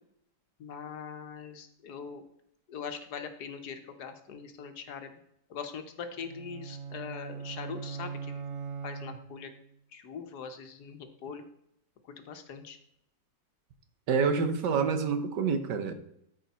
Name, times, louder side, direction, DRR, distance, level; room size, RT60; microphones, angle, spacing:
voice 1, 0.6-2.2 2.7-5.1 5.5-8.4 8.8-9.5 9.9-11.4 12.0-12.8, left 6 dB, 70° left, 7 dB, 1.5 m, -42 dB
sound 1, 6.2-9.7, right 6 dB, 55° right, 0.7 m, -40 dB
voice 2, 14.1-15.9, right 5 dB, 80° right, 8 dB, 1.6 m, -27 dB
12.5 x 5.2 x 4.2 m, 0.74 s
omnidirectional pair, 1.8 m